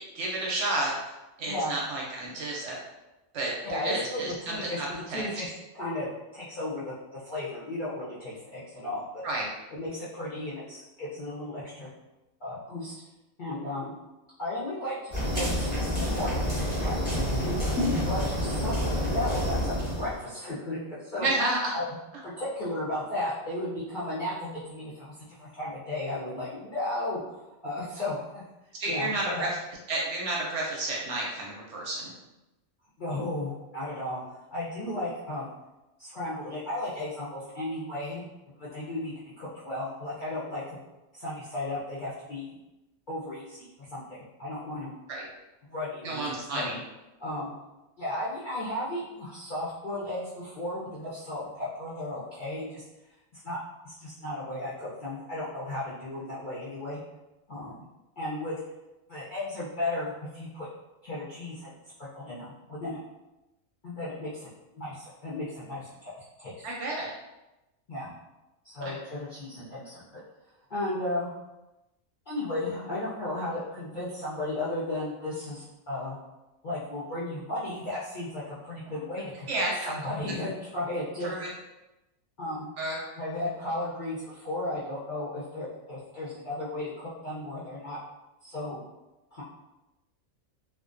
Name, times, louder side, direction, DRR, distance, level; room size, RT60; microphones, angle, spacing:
voice 1, 0.1-0.9 1.4-2.8 3.3-5.2 9.2-9.5 21.2-21.8 28.8-29.5 29.9-32.1 45.1-45.3 46.0-46.8 66.6-67.1 68.8-68.9 79.5-79.9 81.2-81.5 82.8-83.0, right 2 dB, 65° right, -3 dB, 0.8 m, -31 dB
voice 2, 3.6-9.0 9.7-11.9 12.4-12.9 13.4-13.9 14.4-16.5 16.8-21.3 21.7-21.9 22.2-27.4 27.6-28.4 28.9-29.5 33.0-34.2 34.5-35.5 36.0-40.8 41.1-42.5 43.1-44.9 45.7-46.7 47.2-47.5 48.0-52.8 53.3-57.0 57.5-57.8 58.2-58.6 59.1-60.7 61.0-61.7 62.0-63.0 63.8-64.5 64.7-66.7 67.9-68.1 68.6-70.2 70.7-71.4 72.3-76.2 76.6-81.3 82.4-82.7 83.2-88.0 88.4-88.8 89.3-89.4, left 1 dB, 55° left, -10 dB, 0.5 m, -35 dB
sound 1, 15.1-20.2, equal, 10° left, 0.5 m, -28 dB
2.4 x 2.2 x 2.4 m, 0.99 s
omnidirectional pair, 1.4 m